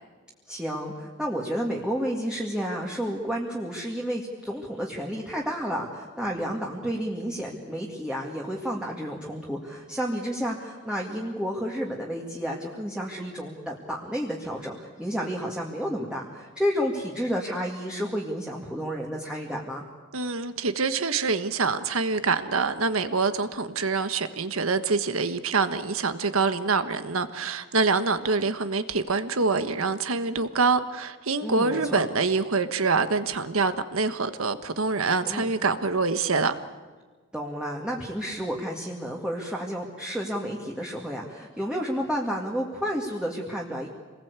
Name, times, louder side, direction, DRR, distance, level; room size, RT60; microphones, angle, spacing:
voice 1, 0.5-19.8 31.4-32.0 35.2-35.5 37.3-43.9, equal, 5° right, 2.2 m, -31 dB
voice 2, 20.1-36.5, right 4 dB, 90° right, 1.4 m, -25 dB
27.0 x 20.5 x 8.2 m
head